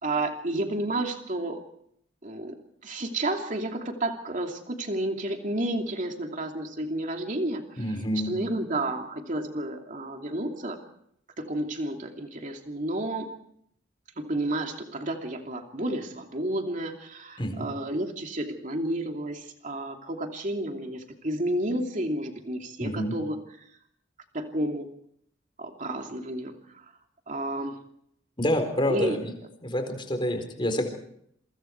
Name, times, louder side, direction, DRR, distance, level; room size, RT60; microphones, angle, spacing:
voice 1, 0.0-1.6 2.2-7.8 8.1-10.8 11.4-13.3 14.2-23.4 24.3-24.9 25.6-26.8 27.3-27.8 28.9-29.2, right 1 dB, 40° right, 3 dB, 2.7 m, -31 dB
voice 2, 7.8-8.3 17.4-17.7 22.8-23.1 28.4-29.3 29.6-30.9, equal, 25° left, 5 dB, 4.2 m, -28 dB
28.0 x 24.0 x 4.7 m, 0.70 s
head